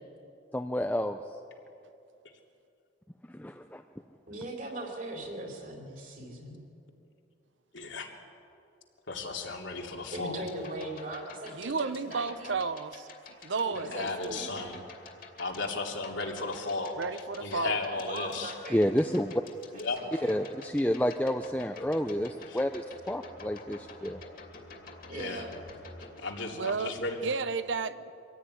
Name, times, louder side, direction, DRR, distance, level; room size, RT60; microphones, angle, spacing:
voice 1, 0.5-1.2 3.3-3.8 18.7-19.4 20.2-24.2, equal, 10° left, 5 dB, 0.6 m, -29 dB
voice 2, 4.3-6.6 10.1-12.6 13.6-14.8 18.1-19.1 19.7-20.4 25.1-25.6, right 1 dB, 45° right, 1 dB, 4.1 m, -40 dB
voice 3, 7.7-8.1 9.1-10.4 13.8-14.8 15.4-16.9 17.4-18.5 19.7-20.0 22.5-22.6 25.1-25.4 26.2-27.2, left 3 dB, 80° left, 1 dB, 3.0 m, -35 dB
sound 1, 10.4-26.2, left 3 dB, 50° left, 2.7 m, -50 dB
voice 4, 11.6-13.1 13.4-14.4 17.0-17.8 26.6-26.9 27.2-28.1, right 4 dB, 75° right, 13 dB, 0.8 m, -32 dB
24.5 x 16.5 x 9.8 m, 2.6 s
head